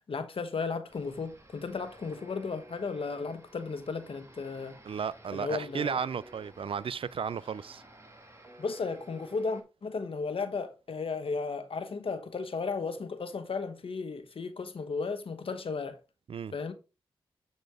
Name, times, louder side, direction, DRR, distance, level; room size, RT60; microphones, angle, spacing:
voice 1, 0.1-4.8 5.3-6.0 8.6-16.0 16.5-16.7, left 4 dB, 70° left, 1.1 m, -34 dB
sound 1, 0.9-9.6, right 1 dB, 30° right, 1.7 m, -53 dB
voice 2, 4.9-7.8 16.3-16.5, right 7 dB, 65° right, 0.4 m, -34 dB
7.6 x 4.3 x 3.4 m
cardioid pair, 40°, 10 cm